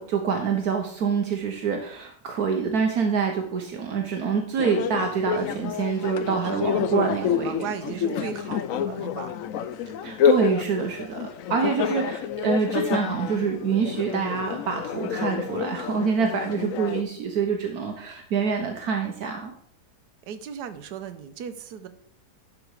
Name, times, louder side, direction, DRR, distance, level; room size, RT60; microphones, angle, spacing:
voice 1, 0.0-8.0 10.0-19.5, right 6 dB, 70° right, 4 dB, 1.4 m, -26 dB
sound 1, 4.6-17.0, left 8 dB, 65° left, 0.9 m, -28 dB
voice 2, 6.4-9.4 20.3-21.9, right 8 dB, 90° right, 9 dB, 1.3 m, -37 dB
12.0 x 4.9 x 4.7 m, 0.62 s
omnidirectional pair, 1.7 m